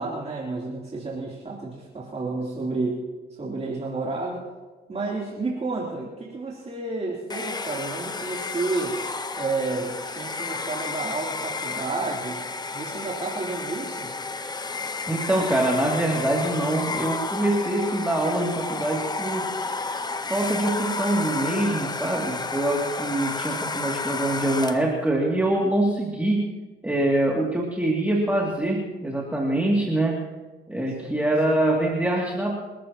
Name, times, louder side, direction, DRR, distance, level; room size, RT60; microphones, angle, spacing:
voice 1, 0.0-3.0 3.4-4.5 4.9-9.0 9.3-12.4 12.7-14.1 31.0-31.3, right 3 dB, 30° right, -4 dB, 3.2 m, -31 dB
Domestic sounds home sounds, 7.3-25.0, left 3 dB, 20° left, 0.9 m, -31 dB
voice 2, 15.1-19.5 20.3-26.5 26.8-30.2 30.7-32.6, right 1 dB, 5° right, -2 dB, 2.4 m, -24 dB
28.0 x 13.5 x 2.9 m, 1.2 s
cardioid pair, 90°, 20 cm